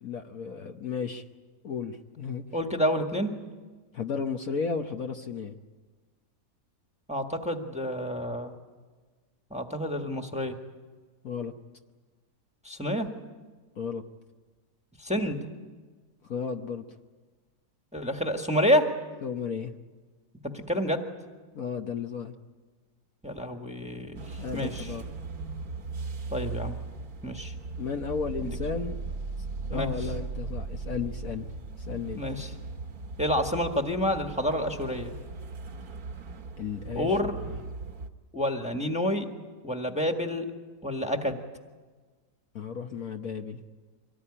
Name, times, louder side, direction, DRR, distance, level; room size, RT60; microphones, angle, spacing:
voice 1, 0.0-1.2 1.6-2.4 3.9-5.5 11.2-11.5 13.8-14.0 16.2-16.8 19.2-19.7 21.5-22.4 24.4-25.1 27.8-29.0 29.7-31.5 31.8-32.2 36.6-37.1 42.5-43.6, left 6 dB, 55° left, 5 dB, 1.3 m, -34 dB
voice 2, 2.5-3.3 7.1-8.5 9.5-10.6 12.6-13.1 15.0-15.5 17.9-18.9 20.4-21.1 23.2-24.9 26.3-26.8 27.2-27.5 28.4-28.6 29.7-29.9 32.1-32.5 33.2-35.1 36.9-37.4 38.3-39.3 39.6-40.5 40.8-41.4, equal, 5° right, 4 dB, 1.5 m, -28 dB
sound 1, 24.1-38.1, right 4 dB, 55° right, 1.8 m, -38 dB
25.0 x 18.5 x 10.0 m, 1.4 s
omnidirectional pair, 1.9 m